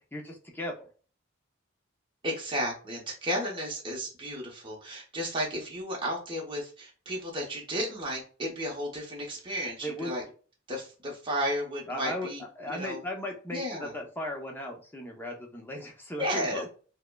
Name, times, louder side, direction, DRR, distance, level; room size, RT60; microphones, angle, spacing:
voice 1, 0.1-0.8 9.8-10.1 11.9-12.3 12.6-16.7, left 1 dB, 10° left, 0 dB, 0.7 m, -37 dB
voice 2, 2.2-10.2 10.7-13.0 13.5-13.9 16.2-16.7, equal, 25° right, -2 dB, 0.8 m, -33 dB
4.8 x 2.1 x 2.2 m, 0.39 s
head